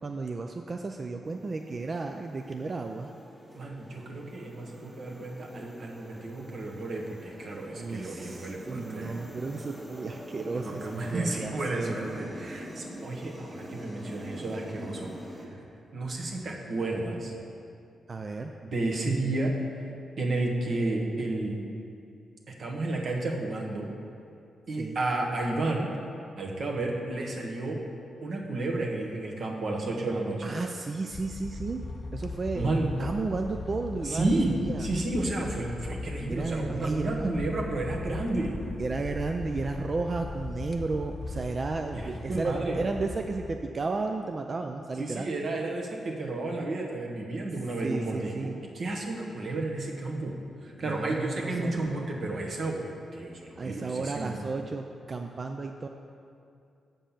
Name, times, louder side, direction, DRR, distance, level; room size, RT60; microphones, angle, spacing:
voice 1, 0.0-3.1 7.7-12.2 12.6-12.7 18.1-18.5 24.8-25.0 30.4-31.9 32.1-32.7 33.0-34.9 36.3-37.3 38.7-45.3 47.8-48.6 50.8-51.8 53.6-55.9, right 3 dB, 40° right, 4 dB, 0.4 m, -33 dB
sound 1, 1.2-15.5, equal, 20° right, 1.5 m, -44 dB
voice 2, 3.5-9.2 10.5-15.1 15.9-17.3 18.6-19.5 20.2-21.6 22.5-23.9 24.7-25.9 26.4-27.8 28.2-30.5 32.5-32.9 34.0-34.5 34.8-38.6 41.9-42.8 45.0-50.3 50.6-54.4, right 2 dB, 60° right, 0 dB, 1.2 m, -32 dB
sound 2, 31.1-43.6, left 3 dB, 40° left, 0.5 m, -39 dB
7.2 x 5.3 x 5.7 m, 2.4 s
cardioid pair, 75°, 0 cm